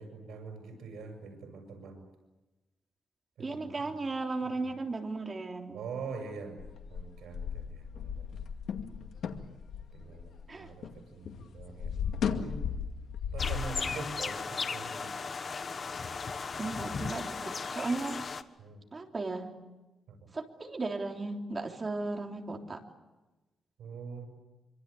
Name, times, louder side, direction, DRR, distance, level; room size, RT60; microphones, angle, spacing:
voice 1, 0.0-2.0 3.4-4.0 4.4-4.7 5.7-6.6 6.9-8.4 9.9-12.0 12.3-12.6 13.3-15.2 18.6-18.8 20.1-20.3 23.8-24.3, right 4 dB, 90° right, 5 dB, 7.1 m, -44 dB
voice 2, 3.4-5.8 10.5-10.7 16.6-18.3 18.9-19.5 20.3-22.8, right 3 dB, 25° right, 2 dB, 3.4 m, -36 dB
sound 1, 6.6-11.0 11.3-13.8, left 7 dB, 80° left, 2.2 m, -36 dB
sound 2, 13.4-18.4, left 5 dB, 35° left, 1.3 m, -36 dB
26.0 x 25.5 x 8.6 m, 1.1 s
wide cardioid pair, 155°, 0 cm